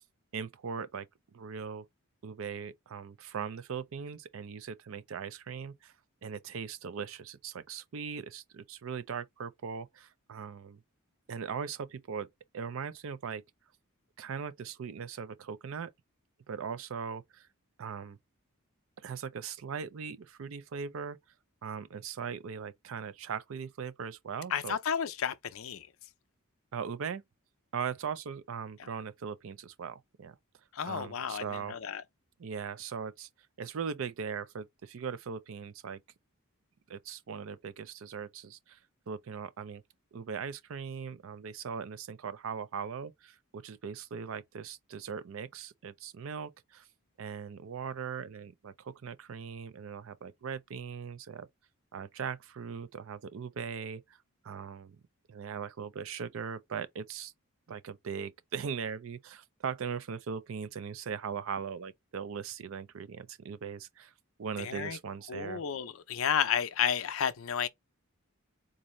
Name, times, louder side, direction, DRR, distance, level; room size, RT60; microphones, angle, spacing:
voice 1, 0.3-1.9 2.2-5.9 6.2-10.8 11.3-12.3 12.5-13.4 14.2-15.9 16.5-17.5 17.8-18.2 19.0-21.2 21.6-24.8 26.7-27.2 27.7-30.4 30.8-31.7 32.4-33.3 33.6-36.0 36.9-38.8 39.1-39.8 40.1-46.9 47.2-51.5 51.9-54.2 54.4-55.0 55.3-57.3 57.7-64.1 64.4-65.6, right 6 dB, 65° right, 0.4 m, -39 dB
voice 2, 24.5-25.9 30.8-31.4 31.7-32.0 64.6-65.0 65.3-67.7, left 8 dB, 70° left, 0.5 m, -31 dB
3.9 x 2.6 x 3.1 m
head